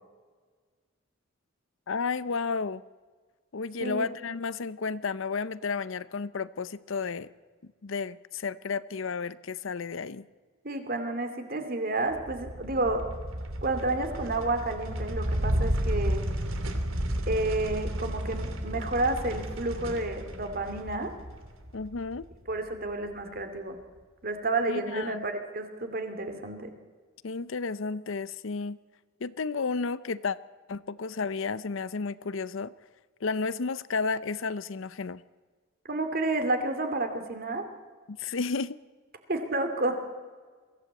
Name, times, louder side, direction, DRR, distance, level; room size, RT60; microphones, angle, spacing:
voice 1, 1.9-2.8 3.5-7.3 7.8-10.2 21.7-22.2 24.7-25.3 27.2-28.8 29.2-30.4 30.7-32.7 33.2-35.2 38.1-38.8, left 4 dB, 70° left, 17 dB, 0.6 m, -32 dB
voice 2, 10.6-13.1 13.6-16.2 17.3-21.1 22.5-23.8 24.2-26.7 35.9-37.7 39.3-40.0, right 2 dB, 45° right, 7 dB, 2.6 m, -30 dB
sound 1, 12.1-22.7, equal, 80° right, 2.6 m, -32 dB
22.5 x 16.0 x 8.2 m, 1.5 s
head